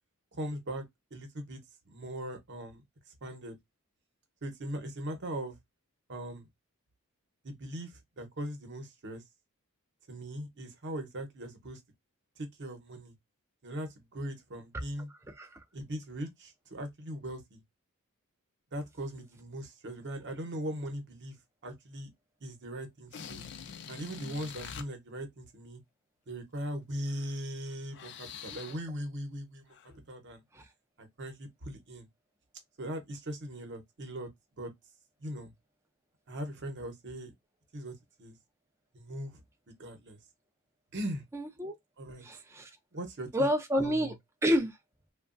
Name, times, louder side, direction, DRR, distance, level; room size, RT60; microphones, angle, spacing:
voice 1, 0.4-0.8 1.1-1.6 1.9-2.8 3.2-3.6 4.4-5.6 6.1-6.5 7.4-9.2 10.1-11.8 12.4-13.1 13.6-15.1 15.7-17.6 18.7-21.4 21.6-22.1 22.4-23.4 23.9-25.8 26.3-30.4 31.0-32.1 32.8-34.3 34.6-34.7 35.2-35.5 36.3-37.3 37.7-38.4 38.9-39.4 39.8-40.2 40.9-41.2 42.0-42.2 42.9-43.5 43.8-44.1, right 1 dB, 55° right, 0.9 m, -40 dB
sound 1, 23.0-24.8 27.1-27.3 27.7-28.9 29.7-29.9, left 7 dB, 55° left, 0.4 m, -45 dB
voice 2, 41.3-41.7 42.2-42.7 43.3-44.1 44.4-44.7, equal, 10° right, 0.4 m, -28 dB
3.0 x 2.3 x 2.4 m
head